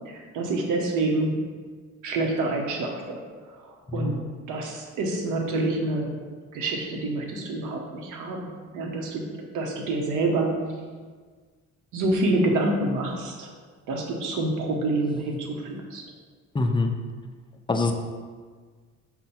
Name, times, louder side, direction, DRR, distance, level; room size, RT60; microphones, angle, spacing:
voice 1, 0.1-1.4 2.0-3.2 3.5-4.2 4.5-6.1 6.5-10.6 11.9-13.5 13.9-16.0, right 2 dB, 85° right, 1 dB, 0.8 m, -27 dB
voice 2, 3.9-4.2 16.5-16.9 17.7-17.9, left 3 dB, 15° left, 5 dB, 0.4 m, -24 dB
5.3 x 2.1 x 4.2 m, 1.5 s
cardioid pair, 90°, 30 cm